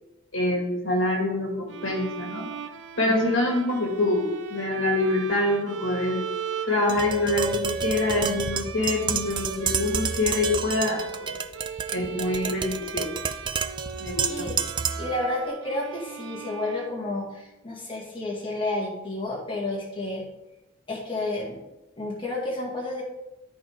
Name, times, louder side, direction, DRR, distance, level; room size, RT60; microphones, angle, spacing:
voice 1, 0.3-2.5 3.0-6.2 6.7-11.3 11.9-13.1 14.0-14.6, left 2 dB, 75° left, 0 dB, 2.1 m, -25 dB
sound 1, 1.7-17.3, right 6 dB, 60° right, 0.6 m, -38 dB
Tap, 6.9-15.2, right 6 dB, 25° right, 0.3 m, -30 dB
voice 2, 14.2-14.6 15.0-20.3 20.9-21.6 22.0-23.0, left 2 dB, 25° left, -4 dB, 2.3 m, -31 dB
13.0 x 4.4 x 3.7 m, 0.93 s
head